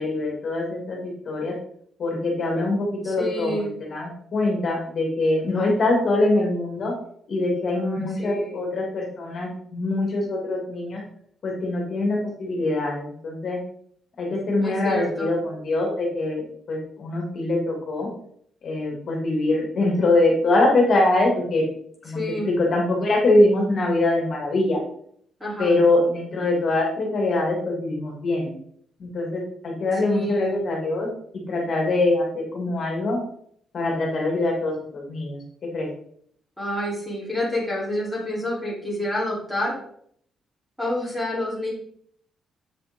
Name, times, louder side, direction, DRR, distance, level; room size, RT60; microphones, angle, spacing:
voice 1, 0.0-1.5 2.0-6.9 7.3-11.0 11.4-13.6 14.2-18.1 18.6-21.6 22.0-24.8 25.6-28.5 29.0-31.1 31.5-33.2 33.7-35.4 35.7-35.9, left 2 dB, 45° left, -1 dB, 2.6 m, -23 dB
voice 2, 3.0-3.7 7.7-8.6 14.6-15.3 22.1-22.5 25.4-25.8 30.0-30.6 36.6-39.8 40.8-41.7, left 1 dB, ahead, -5 dB, 3.6 m, -28 dB
8.1 x 7.0 x 3.8 m, 0.65 s
cardioid pair, 140°, 0 cm